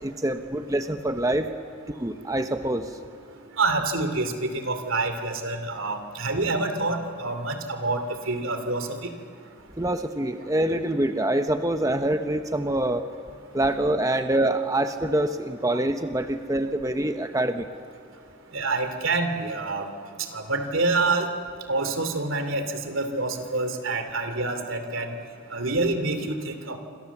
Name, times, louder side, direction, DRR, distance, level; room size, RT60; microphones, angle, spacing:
voice 1, 0.0-1.5 1.9-2.9 9.8-13.1 13.5-17.7, right 1 dB, 15° right, 7 dB, 0.8 m, -25 dB
voice 2, 3.6-9.1 18.5-19.9 20.3-21.3 21.7-25.1 25.5-26.8, right 3 dB, 85° right, 7 dB, 2.7 m, -27 dB
27.0 x 26.5 x 7.2 m, 2.2 s
head